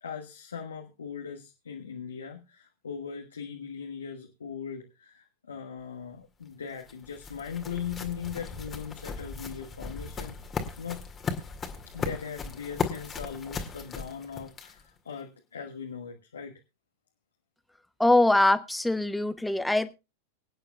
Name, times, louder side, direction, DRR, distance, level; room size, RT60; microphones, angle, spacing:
voice 1, 0.0-10.4 10.8-11.1 11.9-16.6, left 7 dB, 70° left, 2 dB, 1.3 m, -39 dB
sound 1, 6.4-15.0, left 5 dB, 20° left, 2.0 m, -37 dB
voice 2, 18.0-19.9, left 1 dB, 5° left, 13 dB, 0.8 m, -23 dB
24.5 x 9.1 x 2.3 m, 0.27 s
figure-of-eight pair, 90°, 0 cm